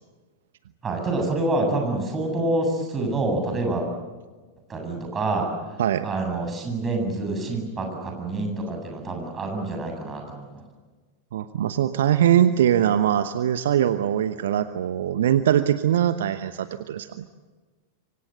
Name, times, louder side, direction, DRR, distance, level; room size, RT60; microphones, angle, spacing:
voice 1, 0.8-3.9 4.7-5.5 6.0-10.6, right 2 dB, 20° right, 3 dB, 7.9 m, -27 dB
voice 2, 11.3-17.2, right 10 dB, 60° right, 12 dB, 1.0 m, -22 dB
27.5 x 25.0 x 7.9 m, 1.3 s
figure-of-eight pair, 90°, 0 cm